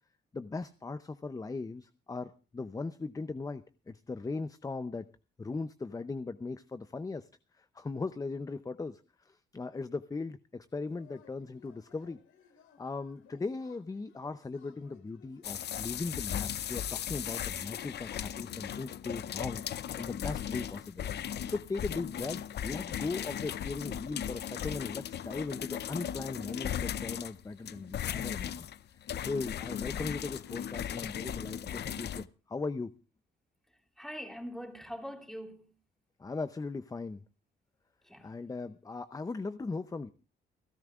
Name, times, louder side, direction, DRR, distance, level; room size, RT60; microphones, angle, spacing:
voice 1, 0.3-5.1 5.4-7.3 7.5-12.2 12.8-19.6 20.0-21.1 21.5-28.7 28.9-32.9 36.2-37.2 38.2-40.1, left 3 dB, 15° left, 0.6 m, -38 dB
Yell / Cheering, 10.9-17.0, left 7 dB, 85° left, 2.5 m, -62 dB
sound 1, 15.4-32.3, left 9 dB, 55° left, 0.6 m, -37 dB
voice 2, 34.0-35.7 38.0-38.3, equal, ahead, 3.1 m, -43 dB
29.5 x 12.0 x 2.4 m
cardioid pair, 90°, 20 cm